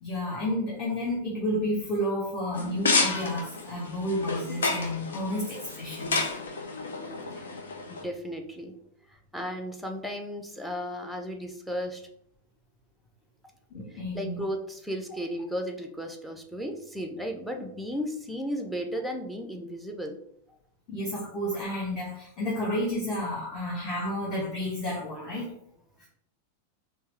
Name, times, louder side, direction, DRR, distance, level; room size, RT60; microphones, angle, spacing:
voice 1, 0.0-6.3 13.7-14.5 20.9-25.5 26.0-26.1, left 1 dB, 30° left, -5 dB, 1.3 m, -31 dB
sound 1, 2.5-8.0, left 3 dB, 65° left, 0.6 m, -30 dB
voice 2, 7.9-8.8 9.1-12.0 13.9-20.2, equal, ahead, 4 dB, 0.6 m, -35 dB
4.5 x 2.6 x 3.2 m, 0.70 s
figure-of-eight pair, 90°, 0 cm